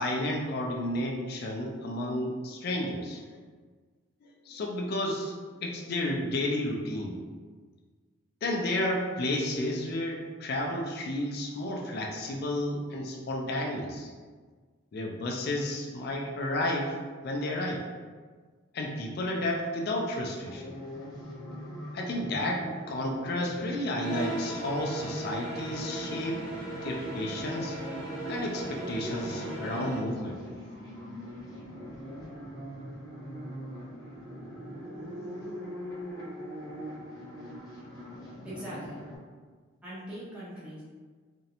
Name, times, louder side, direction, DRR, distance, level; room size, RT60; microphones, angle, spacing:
voice 1, 0.0-3.2 4.2-5.3 5.6-7.2 8.4-14.1 14.9-17.0 17.2-17.9 18.7-20.6 21.9-26.4 26.8-27.8 28.3-30.4, left 1 dB, 50° left, 0 dB, 0.3 m, -32 dB
sound 1, 20.4-39.2, equal, 15° left, 0.9 m, -42 dB
sound 2, 23.9-30.1, right 2 dB, 85° right, 1.1 m, -37 dB
voice 2, 38.4-39.0 39.8-40.8, equal, 5° right, -11 dB, 0.6 m, -41 dB
2.5 x 2.0 x 2.7 m, 1.5 s
head